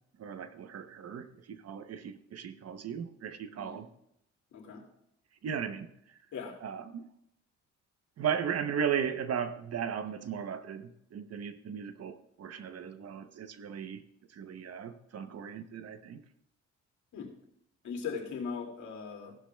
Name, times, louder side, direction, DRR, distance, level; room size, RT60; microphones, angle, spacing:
voice 1, 0.2-3.9 5.4-5.9 6.6-7.1 8.2-14.0 14.3-16.2, right 7 dB, 55° right, 10 dB, 0.9 m, -36 dB
voice 2, 4.5-4.8 6.3-6.5 17.1-17.3 17.8-19.4, left 6 dB, 70° left, 1 dB, 2.4 m, -39 dB
16.5 x 11.5 x 2.3 m, 0.79 s
cardioid pair, 90°, 30 cm